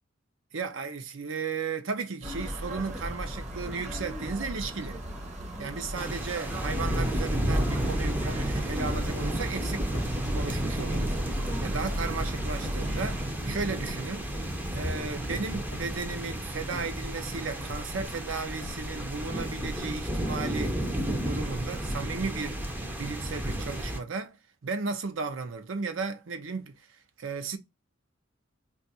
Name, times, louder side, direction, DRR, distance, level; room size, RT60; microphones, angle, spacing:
voice 1, 0.5-5.0 5.6-9.9 10.3-14.4 14.7-24.4 24.6-27.6, right 4 dB, 70° right, 0.6 m, -35 dB
sound 1, 2.2-13.3, equal, 35° right, 0.8 m, -36 dB
sound 2, 5.9-24.0, right 1 dB, 10° right, 0.5 m, -32 dB
sound 3, 6.8-7.3 7.9-8.3 8.8-9.3 9.9-10.3 10.9-11.5 11.9-12.4 13.0-13.4 13.8-14.5 14.8-15.3 15.7-16.2 16.6-17.3 17.7-18.2 18.6-19.2 19.6-20.1, left 2 dB, 65° left, 0.8 m, -43 dB
2.4 x 2.4 x 4.0 m
head